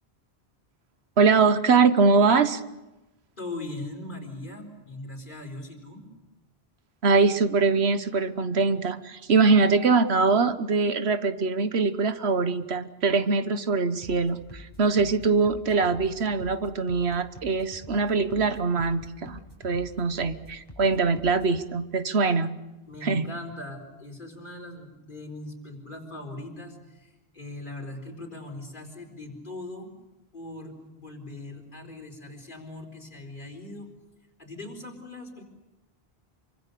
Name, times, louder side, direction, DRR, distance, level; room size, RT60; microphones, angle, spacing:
voice 1, 1.2-2.6 7.0-22.5 23.0-23.3, right 4 dB, 85° right, 11 dB, 1.4 m, -23 dB
voice 2, 3.4-6.1 22.9-29.9 30.3-33.9 34.4-35.4, left 2 dB, 50° left, 2 dB, 4.5 m, -40 dB
sound 1, 14.0-21.6, left 1 dB, 25° left, 5.5 m, -47 dB
26.5 x 25.0 x 6.8 m, 1.0 s
omnidirectional pair, 1.1 m